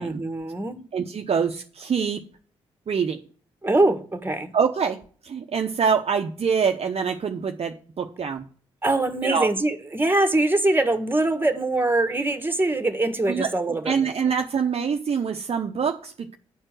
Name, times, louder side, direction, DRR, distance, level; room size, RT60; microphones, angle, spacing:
voice 1, 0.0-0.8 3.6-4.5 8.8-14.1, right 2 dB, 15° right, 1.7 m, -23 dB
voice 2, 0.9-2.2 2.9-3.2 4.5-5.0 5.2-8.5 9.2-9.5 13.3-13.5 13.9-16.4, right 6 dB, 50° right, 0.9 m, -25 dB
10.0 x 4.5 x 7.8 m
hypercardioid pair, 40°, 13 cm